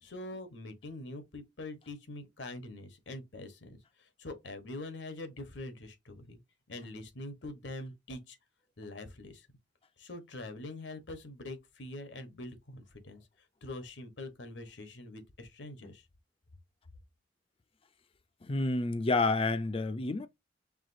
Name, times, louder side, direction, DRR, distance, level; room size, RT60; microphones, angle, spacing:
voice 1, 0.0-6.4 6.7-8.4 8.8-9.5 10.0-13.3 13.6-16.0, left 2 dB, 75° left, 1.0 m, -44 dB
voice 2, 18.4-20.3, left 3 dB, 30° left, 0.4 m, -29 dB
4.9 x 3.5 x 2.6 m
head